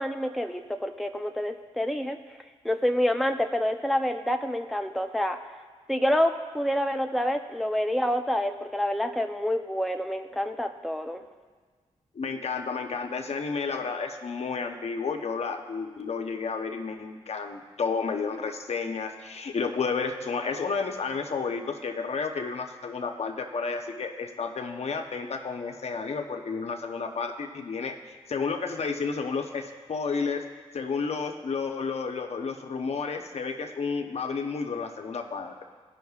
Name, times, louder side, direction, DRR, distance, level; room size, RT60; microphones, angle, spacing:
voice 1, 0.0-2.2 2.6-5.4 5.9-11.2, equal, ahead, 5 dB, 0.5 m, -27 dB
voice 2, 12.1-28.0 28.3-30.4 30.7-35.6, left 5 dB, 65° left, 4 dB, 0.8 m, -31 dB
17.0 x 5.8 x 2.4 m, 1.5 s
cardioid pair, 60°, 12 cm